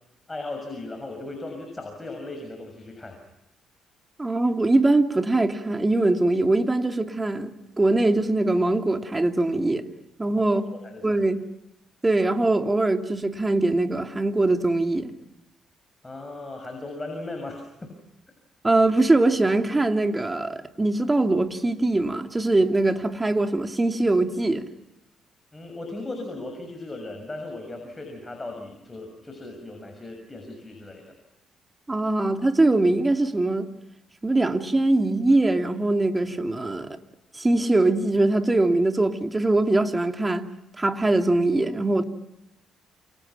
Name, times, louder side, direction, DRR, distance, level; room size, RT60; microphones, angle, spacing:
voice 1, 0.3-3.2 10.5-11.2 16.0-17.9 25.5-31.0, left 2 dB, 20° left, 6.8 m, -37 dB
voice 2, 4.2-9.8 10.2-10.7 11.0-11.4 12.0-15.1 18.6-24.7 31.9-33.7 34.2-37.0 37.3-40.5 40.8-42.0, right 2 dB, 20° right, 2.6 m, -22 dB
28.5 x 28.0 x 5.8 m
cardioid pair, 90°, 0 cm